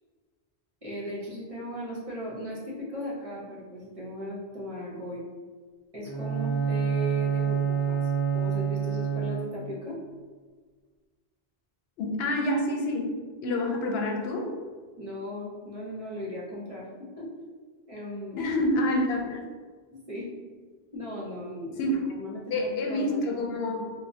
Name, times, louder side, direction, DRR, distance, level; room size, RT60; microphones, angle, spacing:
voice 1, 0.8-5.2 5.9-8.0 8.3-10.0 14.9-17.3 17.9-18.4 19.9-20.3 20.9-23.2, equal, 40° right, -6 dB, 0.7 m, -37 dB
Bowed string instrument, 6.0-9.8, right 7 dB, 40° left, 1.0 m, -27 dB
voice 2, 12.0-13.1 13.4-14.5 18.4-19.4 21.8-22.0 22.5-23.9, left 1 dB, 75° left, 1 dB, 0.8 m, -27 dB
4.3 x 2.1 x 2.6 m, 1.5 s
omnidirectional pair, 1.1 m